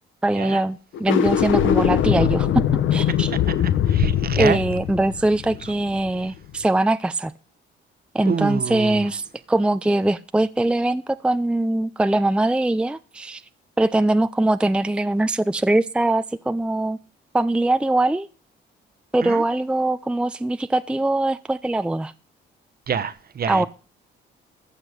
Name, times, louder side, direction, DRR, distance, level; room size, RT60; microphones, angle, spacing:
voice 1, 0.2-2.5 2.9-3.3 4.4-7.3 8.1-13.4 13.8-17.0 17.3-18.3 19.1-22.1 23.5-23.7, right 2 dB, 5° right, 0.5 m, -22 dB
sound 1, 0.9-6.2, left 9 dB, 75° left, 1.2 m, -21 dB
voice 2, 3.1-4.6 8.2-9.1 19.2-19.4 22.9-23.7, right 7 dB, 50° right, 1.1 m, -27 dB
14.5 x 7.6 x 6.6 m
cardioid pair, 90°, 20 cm